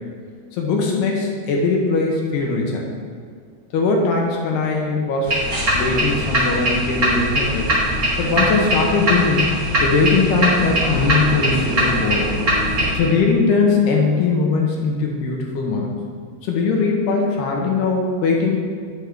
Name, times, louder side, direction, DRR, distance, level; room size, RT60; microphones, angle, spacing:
voice 1, 0.5-2.8 3.7-5.3 5.7-7.7 8.2-9.5 9.8-12.3 12.9-15.9 16.4-18.6, left 4 dB, 75° left, 0 dB, 2.7 m, -20 dB
sound 1, 5.3-12.9, equal, 55° right, 0.9 m, -21 dB
10.0 x 9.4 x 3.6 m, 2.1 s
omnidirectional pair, 5.4 m